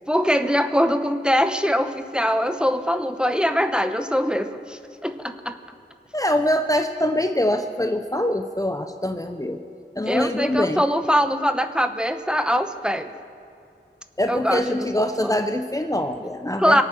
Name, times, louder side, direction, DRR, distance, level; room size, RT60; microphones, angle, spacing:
voice 1, 0.1-5.6 10.0-13.1 14.3-15.5 16.6-16.8, equal, 5° right, 8 dB, 0.9 m, -22 dB
voice 2, 6.1-9.6 10.0-10.8 14.2-16.8, left 1 dB, 15° left, 6 dB, 0.7 m, -24 dB
24.0 x 8.9 x 6.3 m, 2.6 s
wide cardioid pair, 40°, 20 cm